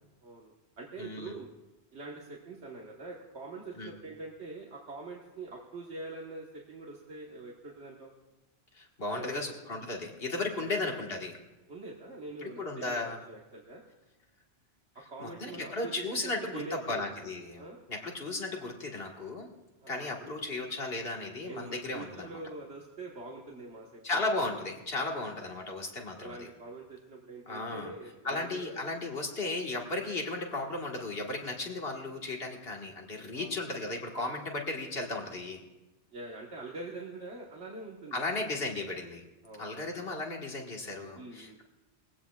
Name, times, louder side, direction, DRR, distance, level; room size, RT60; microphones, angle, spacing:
voice 1, 0.2-1.5 1.9-8.1 9.1-9.4 10.6-10.8 11.7-13.8 14.9-17.3 17.6-17.8 19.8-20.3 21.4-24.2 26.2-28.8 30.0-30.1 33.3-33.6 34.7-34.9 36.1-38.5 39.4-40.0 41.1-41.6, right 3 dB, 75° right, -2 dB, 1.7 m, -44 dB
voice 2, 1.0-1.3 3.8-3.9 8.7-11.4 12.4-13.2 15.2-17.6 17.9-19.5 19.9-22.4 24.0-26.5 27.5-27.9 28.2-35.6 38.1-39.2 39.6-41.6, left 2 dB, 60° left, 0 dB, 1.9 m, -35 dB
21.0 x 16.0 x 2.4 m, 1.0 s
omnidirectional pair, 1.1 m